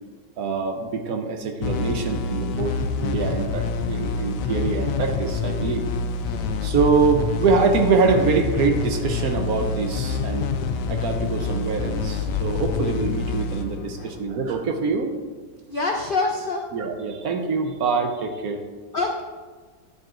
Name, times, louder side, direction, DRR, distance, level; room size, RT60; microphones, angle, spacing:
voice 1, 0.4-5.8 6.6-10.5 10.9-15.1 16.7-18.6, right 4 dB, 65° right, 4 dB, 1.2 m, -24 dB
sound 1, 1.6-14.9, left 4 dB, 90° left, 1.2 m, -27 dB
voice 2, 15.7-16.6 18.9-19.2, left 3 dB, 75° left, 2 dB, 0.5 m, -25 dB
11.0 x 7.4 x 2.5 m, 1.4 s
omnidirectional pair, 1.8 m